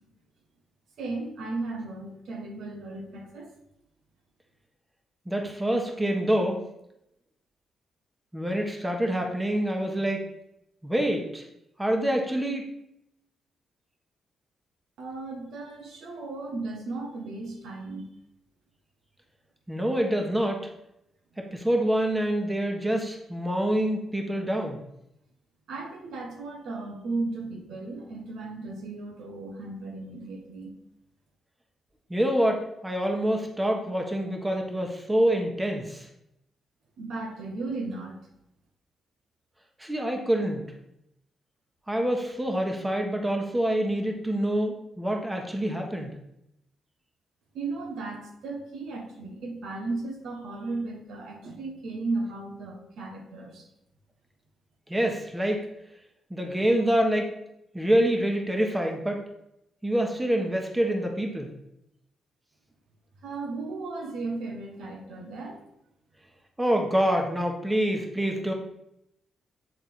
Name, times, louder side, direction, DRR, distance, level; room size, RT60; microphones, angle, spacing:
voice 1, 1.0-3.5 15.0-18.1 25.7-30.7 37.0-38.2 47.5-53.7 63.2-65.6, right 3 dB, 75° right, 2 dB, 1.3 m, -35 dB
voice 2, 5.3-6.6 8.3-10.2 10.8-11.4 11.8-12.7 19.7-20.6 21.4-24.8 32.1-36.1 39.8-40.7 41.9-46.1 54.9-55.7 56.3-57.3 57.7-59.2 59.8-61.5 66.6-68.5, right 1 dB, 15° right, 2 dB, 1.4 m, -26 dB
8.4 x 3.7 x 4.6 m, 0.82 s
cardioid pair, 75°, 0 cm